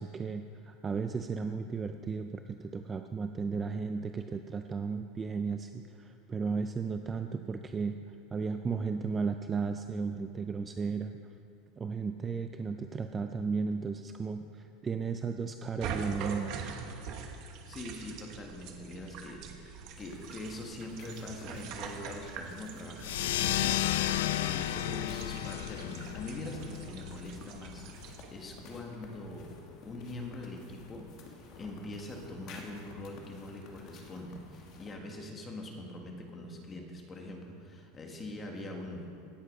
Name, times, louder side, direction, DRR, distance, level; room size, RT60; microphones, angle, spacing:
voice 1, 0.0-8.0 8.3-11.2 11.8-16.6, right 5 dB, 15° right, 7 dB, 0.3 m, -34 dB
sound 1, 15.8-28.3, right 6 dB, 40° right, 1.2 m, -44 dB
voice 2, 17.7-23.8 24.1-29.5 29.8-39.2, left 2 dB, 15° left, 1 dB, 1.6 m, -43 dB
sound 2, 19.9-35.0, left 3 dB, 40° left, 1.7 m, -53 dB
sound 3, 23.0-28.1, left 14 dB, 80° left, 0.4 m, -33 dB
17.5 x 7.9 x 5.4 m, 2.5 s
supercardioid pair, 170°, 0 cm